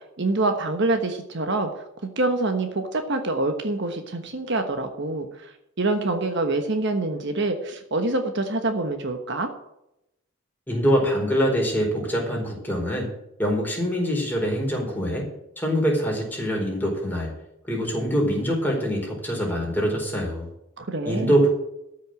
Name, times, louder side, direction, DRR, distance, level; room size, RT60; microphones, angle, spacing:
voice 1, 0.2-1.8 2.2-9.5 20.8-21.4, right 2 dB, 55° right, 6 dB, 1.2 m, -26 dB
voice 2, 10.7-13.1 13.4-15.3 15.6-17.3 17.7-20.5 21.0-21.5, equal, 10° left, -2 dB, 4.4 m, -24 dB
13.0 x 6.5 x 7.6 m, 0.84 s
head